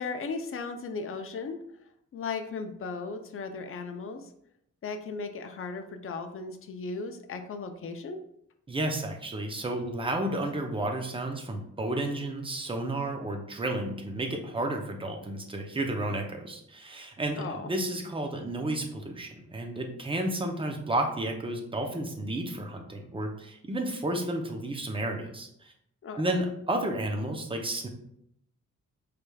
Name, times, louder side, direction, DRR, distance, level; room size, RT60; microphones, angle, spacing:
voice 1, 0.0-1.6 2.1-4.3 4.8-8.2 17.3-17.7 26.0-26.4, left 4 dB, 45° left, 7 dB, 0.5 m, -36 dB
voice 2, 8.7-25.7 26.2-27.9, right 1 dB, 15° right, 3 dB, 0.6 m, -32 dB
4.8 x 3.3 x 2.3 m, 0.74 s
wide cardioid pair, 115°, 31 cm